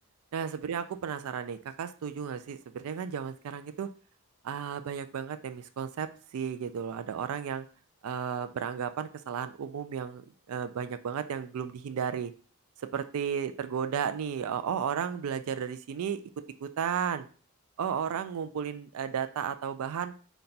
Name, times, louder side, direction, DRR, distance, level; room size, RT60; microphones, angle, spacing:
voice 1, 0.3-3.9 4.4-7.7 8.0-10.2 10.5-12.3 12.8-16.2 16.6-17.3 17.8-20.1, right 7 dB, 80° right, 11 dB, 0.3 m, -33 dB
4.0 x 2.2 x 3.9 m, 0.39 s
head